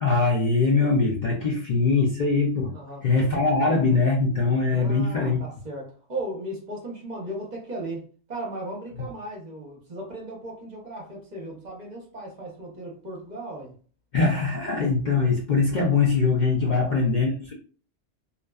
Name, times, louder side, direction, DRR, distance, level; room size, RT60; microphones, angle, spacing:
voice 1, 0.0-2.7 3.0-5.4 14.1-17.5, left 4 dB, 60° left, -2 dB, 0.5 m, -22 dB
voice 2, 2.7-3.4 4.7-8.0 8.3-13.7 16.6-17.0, right 1 dB, 40° right, -2 dB, 0.8 m, -36 dB
2.5 x 2.2 x 2.2 m, 0.40 s
omnidirectional pair, 1.3 m